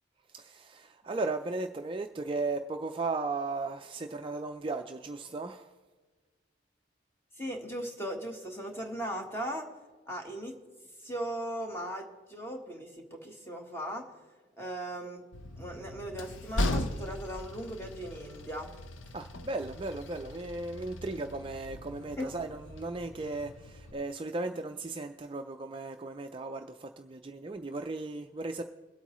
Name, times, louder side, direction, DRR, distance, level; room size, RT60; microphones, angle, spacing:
voice 1, 0.3-5.7 19.1-28.6, right 3 dB, 25° right, 5 dB, 0.4 m, -36 dB
voice 2, 7.4-9.7 10.1-10.6 11.0-14.1 14.6-15.2 15.6-18.7 22.2-22.3, right 1 dB, 10° left, 2 dB, 1.4 m, -38 dB
Train, 15.3-23.9, left 1 dB, 80° left, 0.7 m, -38 dB
22.5 x 8.3 x 3.1 m, 1.3 s
head